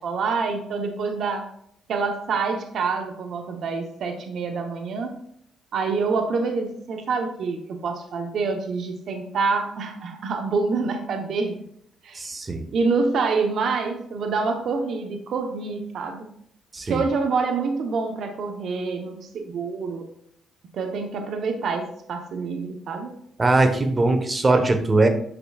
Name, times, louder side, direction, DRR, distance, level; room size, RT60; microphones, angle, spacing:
voice 1, 0.0-1.5 1.9-5.2 5.7-11.6 12.0-12.2 12.7-16.3 16.9-20.1 20.7-23.1, right 4 dB, 65° right, 5 dB, 0.9 m, -26 dB
voice 2, 12.1-12.7 16.7-17.0 23.4-25.1, right 2 dB, 30° right, 7 dB, 1.1 m, -20 dB
8.7 x 6.0 x 2.4 m, 0.69 s
cardioid pair, 90°, 0 cm